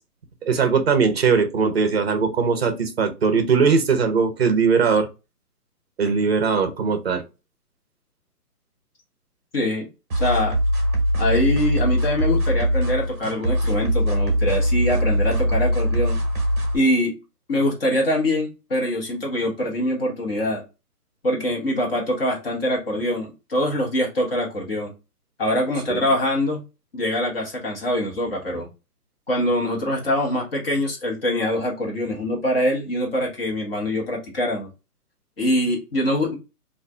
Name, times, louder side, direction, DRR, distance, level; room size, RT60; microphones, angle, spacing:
voice 1, 0.4-5.1 6.0-7.2 25.9-26.1, right 5 dB, 40° right, 8 dB, 0.5 m, -20 dB
voice 2, 9.5-9.9 10.1-10.6 11.2-16.2 16.7-17.1 17.5-20.6 21.2-24.9 25.4-26.6 26.9-28.7 29.3-34.7 35.4-36.3, left 1 dB, 40° left, -1 dB, 1.1 m, -24 dB
sound 1, 10.1-16.8, equal, 25° right, 0.9 m, -22 dB
2.5 x 2.4 x 3.2 m, 0.28 s
hypercardioid pair, 165°, 47 cm